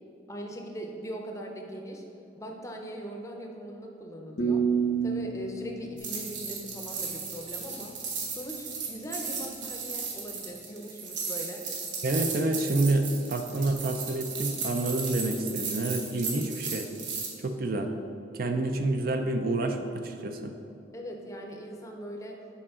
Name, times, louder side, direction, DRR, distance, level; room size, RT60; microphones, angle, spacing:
voice 1, 0.3-2.0 2.4-4.7 5.0-7.9 8.3-11.6 20.9-22.4, right 1 dB, 20° left, 1 dB, 0.6 m, -40 dB
sound 1, 4.4-7.3, right 6 dB, 85° left, 0.9 m, -30 dB
sound 2, 6.0-17.3, right 5 dB, 90° right, 1.1 m, -35 dB
voice 2, 12.0-16.9 17.4-17.9 18.3-20.5, right 2 dB, 55° right, 6 dB, 0.4 m, -28 dB
7.0 x 4.9 x 3.7 m, 2.7 s
head